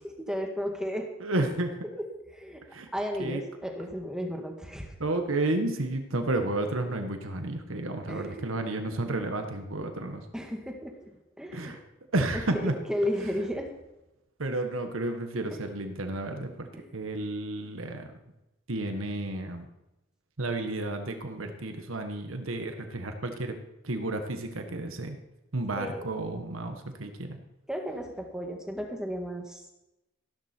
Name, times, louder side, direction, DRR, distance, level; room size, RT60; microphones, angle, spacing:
voice 1, 0.3-1.1 1.9-2.0 2.3-2.6 2.9-4.9 8.1-8.5 10.3-11.1 11.4-11.7 12.5-13.7 15.5-15.6 16.7-16.8 25.8-26.1 27.7-29.7, equal, 5° right, 2 dB, 1.9 m, -34 dB
voice 2, 1.2-1.8 2.7-2.9 3.2-3.4 5.0-10.2 11.5-11.8 12.1-12.7 14.4-18.1 18.7-19.7 20.4-23.5 23.8-25.2 25.5-27.4, right 2 dB, 80° right, 6 dB, 1.5 m, -31 dB
15.0 x 12.5 x 4.5 m, 0.94 s
head